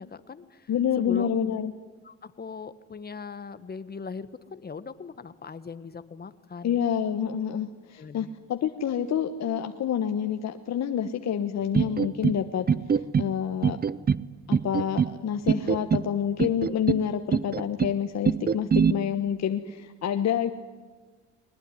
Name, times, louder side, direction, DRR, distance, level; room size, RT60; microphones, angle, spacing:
voice 1, 0.0-0.7 1.0-1.4 2.0-6.8 7.9-8.3, left 5 dB, 30° left, 13 dB, 1.5 m, -40 dB
voice 2, 0.7-1.7 6.6-12.7 13.2-13.8 14.5-20.5, left 8 dB, 60° left, 7 dB, 1.3 m, -28 dB
sound 1, 11.7-12.4 12.7-13.3 13.6-14.2 14.5-15.1 15.5-16.1 16.4-17.0 17.3-17.9 18.3-18.9, right 6 dB, 30° right, 0.7 m, -23 dB
22.0 x 20.0 x 9.8 m, 1.4 s
cardioid pair, 90°, 30 cm